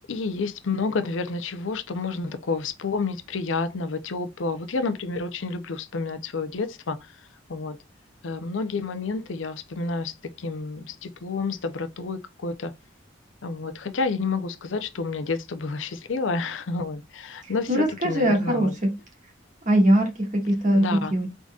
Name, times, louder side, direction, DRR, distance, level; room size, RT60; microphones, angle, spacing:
voice 1, 0.1-7.2 7.5-7.8 8.2-12.7 13.4-18.7 20.7-21.1, left 4 dB, 90° left, 0.6 m, -29 dB
voice 2, 17.7-18.9 19.7-21.3, right 1 dB, 45° right, 1.8 m, -21 dB
3.8 x 3.7 x 2.4 m
head